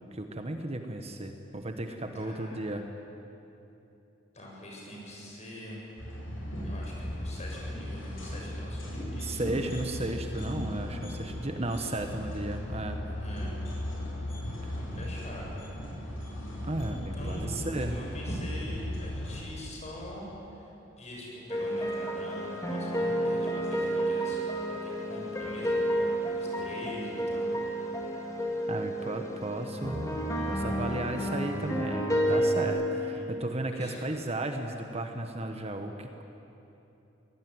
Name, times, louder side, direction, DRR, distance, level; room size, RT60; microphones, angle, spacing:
voice 1, 0.1-2.8 9.2-13.0 14.6-14.7 16.6-18.0 28.7-30.1 30.5-36.2, right 1 dB, 35° right, 5 dB, 1.3 m, -34 dB
voice 2, 2.1-2.7 4.3-5.9 6.6-9.4 13.2-13.6 14.4-14.5 14.9-15.6 16.8-20.7 21.0-27.5 32.9-33.3 33.7-34.0, equal, 35° left, -3 dB, 7.4 m, -44 dB
sound 1, 6.0-19.4, left 1 dB, 85° left, 7.8 m, -36 dB
sound 2, 21.5-32.6, right 1 dB, 15° left, 3.4 m, -30 dB
24.5 x 18.5 x 9.6 m, 2.9 s
head